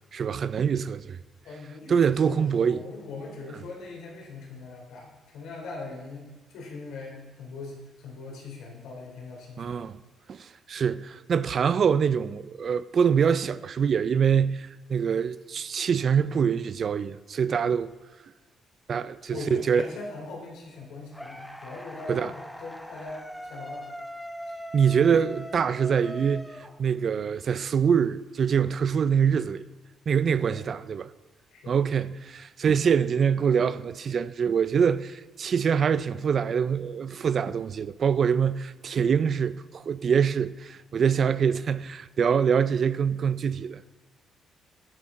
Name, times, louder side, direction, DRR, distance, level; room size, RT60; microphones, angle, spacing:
voice 1, 0.1-1.2 1.9-2.8 9.6-10.0 10.3-17.9 18.9-19.8 22.1-22.3 24.7-26.4 26.8-29.7 30.1-31.1 31.7-43.9, right 7 dB, 50° right, 0.4 m, -24 dB
voice 2, 1.4-9.9 19.3-23.2 23.5-23.9 24.5-24.6 30.4-30.7 31.5-31.8, left 3 dB, 85° left, 2.9 m, -41 dB
sound 1, 21.1-27.2, equal, 5° left, 0.8 m, -41 dB
10.0 x 9.6 x 3.7 m
cardioid pair, 90°, 0 cm